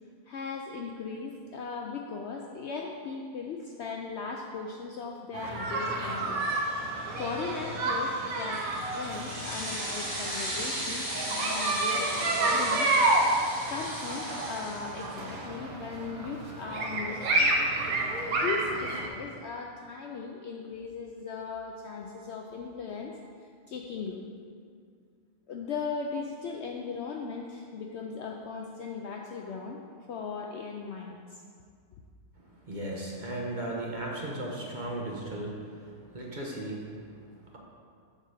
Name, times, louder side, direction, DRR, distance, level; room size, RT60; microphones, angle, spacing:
voice 1, 0.3-6.5 7.2-8.6 8.9-12.9 13.2-13.3 13.7-17.4 18.3-23.1 23.7-24.3 25.5-29.8 30.1-31.4, left 5 dB, 65° left, 1 dB, 0.7 m, -38 dB
sound 1, 5.3-19.1, right 2 dB, 80° right, 1.4 m, -30 dB
sound 2, 8.3-15.3, equal, 50° right, 2.2 m, -36 dB
voice 2, 32.4-37.6, right 1 dB, 35° right, -3 dB, 1.1 m, -37 dB
7.4 x 3.9 x 6.5 m, 2.2 s
omnidirectional pair, 1.5 m